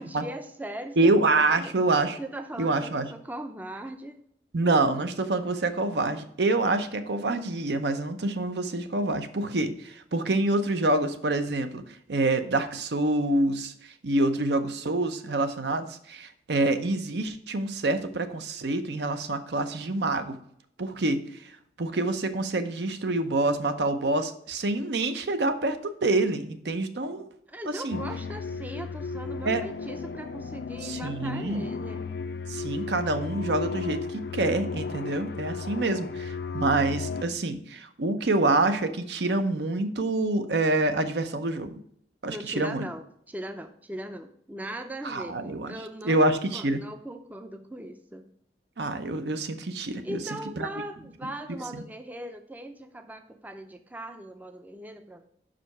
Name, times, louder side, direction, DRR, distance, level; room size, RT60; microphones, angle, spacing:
voice 1, 0.0-1.7 2.2-4.2 27.5-32.1 42.3-48.3 50.0-55.3, right 1 dB, 10° right, 7 dB, 0.4 m, -39 dB
voice 2, 1.0-2.2 2.6-3.1 4.5-11.8 12.1-13.7 14.0-20.4 20.8-21.2 21.8-27.3 27.7-28.0 29.5-29.6 30.8-31.7 32.5-41.8 42.2-42.8 45.0-45.7 46.0-46.8 48.8-50.2 50.6-50.7 51.7-51.8, right 2 dB, 75° right, 9 dB, 0.7 m, -26 dB
sound 1, 27.9-37.2, left 4 dB, 65° left, 0.5 m, -34 dB
5.5 x 5.0 x 5.9 m, 0.67 s
head